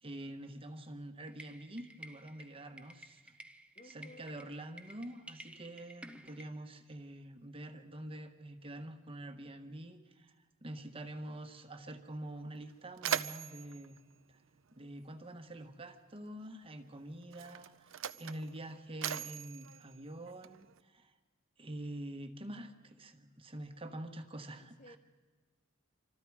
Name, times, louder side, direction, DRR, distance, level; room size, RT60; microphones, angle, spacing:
voice 1, 0.0-3.3 3.8-10.3 10.6-14.0 14.3-14.4 14.8-21.1 21.6-25.0, right 1 dB, 30° right, 1.3 m, -46 dB
sound 1, 1.3-6.5, right 1 dB, 5° right, 0.8 m, -53 dB
voice 2, 3.8-4.3 24.6-25.0, left 1 dB, 40° left, 0.9 m, -56 dB
Mechanisms, 12.1-12.2 12.5-15.2 16.2-16.4 17.2-20.8, right 9 dB, 80° right, 0.6 m, -41 dB
27.0 x 25.5 x 4.8 m
head